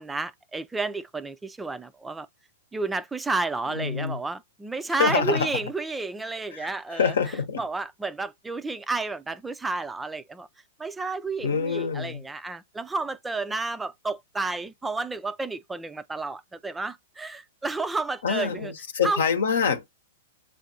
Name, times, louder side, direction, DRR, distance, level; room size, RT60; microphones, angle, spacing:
voice 1, 0.0-2.3 2.7-7.1 7.6-10.5 10.8-18.7 19.0-19.2, right 3 dB, 10° right, 0.3 m, -31 dB
voice 2, 3.7-4.2 5.0-5.6 6.5-7.6 11.4-12.2 18.2-19.9, left 6 dB, 75° left, 0.9 m, -26 dB
7.5 x 2.5 x 2.7 m
hypercardioid pair, 110°, 0 cm